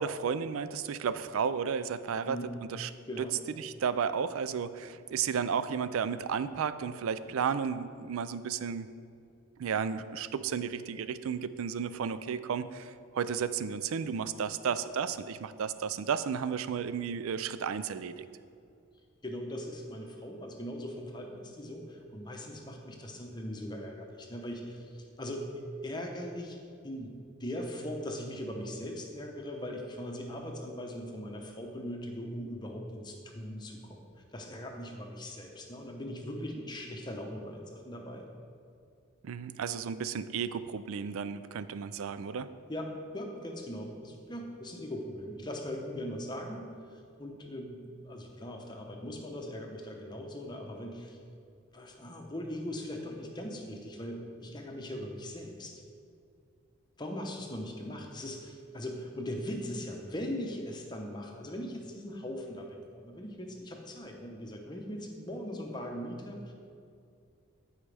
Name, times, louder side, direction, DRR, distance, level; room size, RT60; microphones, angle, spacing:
voice 1, 0.0-2.4 2.7-2.9 3.2-3.3 3.6-8.9 9.6-18.3 39.2-42.5, right 6 dB, 80° right, 13 dB, 0.4 m, -33 dB
voice 2, 2.2-2.5 3.1-3.4 19.2-26.6 26.8-27.1 27.4-38.3 42.7-46.6 46.9-51.2 51.7-55.8 57.0-66.5, equal, 20° left, 2 dB, 0.8 m, -40 dB
14.0 x 4.8 x 3.4 m, 2.4 s
head